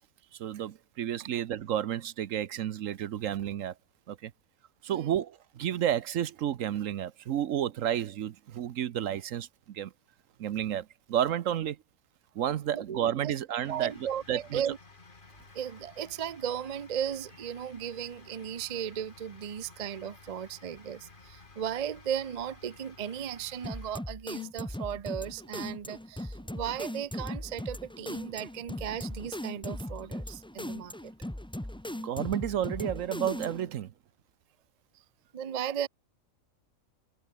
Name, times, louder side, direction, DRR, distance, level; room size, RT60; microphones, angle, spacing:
voice 1, 0.4-3.7 4.1-4.3 4.8-9.9 10.4-11.8 12.3-13.9 14.3-14.6 32.0-33.9, right 10 dB, 70° right, 1.1 m, -31 dB
voice 2, 4.9-5.2 12.7-13.3 13.7-14.8 15.5-31.1 35.3-35.9, right 9 dB, 40° right, 0.6 m, -36 dB
sound 1, 13.6-24.0, left 3 dB, 35° left, 2.3 m, -54 dB
sound 2, 23.6-33.7, left 1 dB, 5° left, 0.6 m, -38 dB
omnidirectional pair, 1.5 m